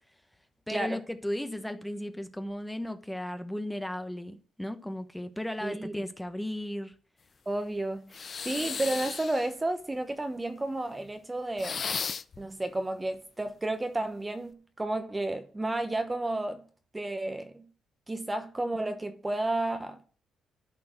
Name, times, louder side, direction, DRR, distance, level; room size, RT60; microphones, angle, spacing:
voice 1, 0.7-6.9, left 1 dB, 5° left, 1.1 m, -35 dB
voice 2, 5.6-5.9 7.5-11.8 12.4-16.6 16.9-17.6 18.1-20.0, right 2 dB, 15° right, 1.1 m, -32 dB
sound 1, 8.1-9.5 11.6-12.4, left 6 dB, 45° left, 0.6 m, -35 dB
12.5 x 4.3 x 7.8 m
cardioid pair, 90°, 0 cm